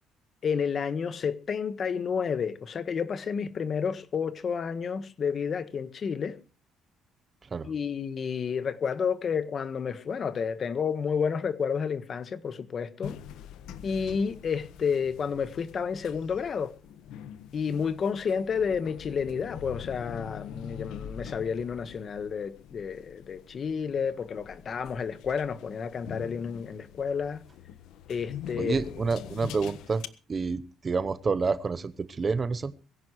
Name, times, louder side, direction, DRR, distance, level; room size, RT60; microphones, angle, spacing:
voice 1, 0.4-6.4 7.6-13.2 13.8-16.7 17.5-27.4 28.1-28.8, left 6 dB, 35° left, 1.4 m, -30 dB
sound 1, 13.0-30.1, left 9 dB, 75° left, 1.3 m, -44 dB
voice 2, 28.6-30.0 30.3-32.7, right 4 dB, 25° right, 0.9 m, -28 dB
20.5 x 17.0 x 3.2 m
cardioid pair, 145°, 0 cm